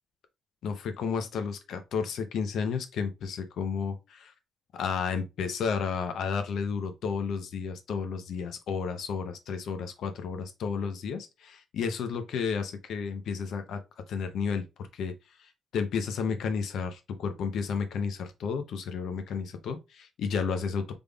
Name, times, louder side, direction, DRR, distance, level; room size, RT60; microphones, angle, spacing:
voice 1, 0.6-4.3 4.7-13.8 14.1-14.6 14.9-15.1 15.4-20.9, left 6 dB, 70° left, 0.6 m, -32 dB
3.4 x 3.4 x 2.3 m
cardioid pair, 90°, 0 cm